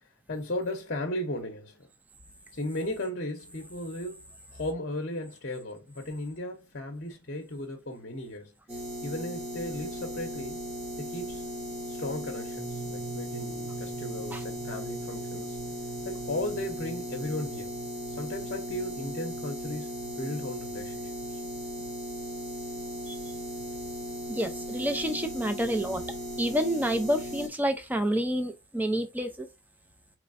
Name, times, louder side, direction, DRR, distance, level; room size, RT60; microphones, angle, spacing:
voice 1, 0.3-1.9 2.5-4.2 4.5-8.5 9.0-10.6 11.0-11.4 11.9-15.6 16.0-17.7 18.2-21.4, left 1 dB, 50° left, 0.8 m, -36 dB
sound 1, 8.7-27.5, equal, 30° right, 1.3 m, -37 dB
Bmin--(Mid-G), 12.6-22.1, right 4 dB, 65° right, 0.9 m, -46 dB
voice 2, 24.3-26.0 26.4-29.5, equal, 10° right, 0.5 m, -28 dB
4.4 x 3.1 x 2.6 m
head